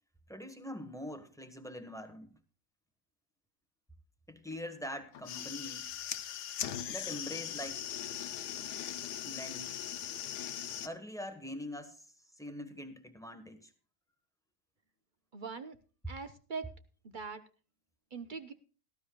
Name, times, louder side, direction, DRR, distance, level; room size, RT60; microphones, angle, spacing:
voice 1, 0.3-2.3 4.3-6.0 6.9-7.9 9.3-9.8 10.8-12.1 12.4-13.7, left 1 dB, ahead, 8 dB, 1.0 m, -43 dB
sound 1, 5.1-10.9, left 10 dB, 80° left, 1.4 m, -40 dB
voice 2, 15.3-15.8 16.1-16.7 17.0-17.4 18.1-18.5, right 5 dB, 40° right, 10 dB, 0.8 m, -41 dB
18.0 x 12.5 x 2.3 m, 0.36 s
omnidirectional pair, 1.7 m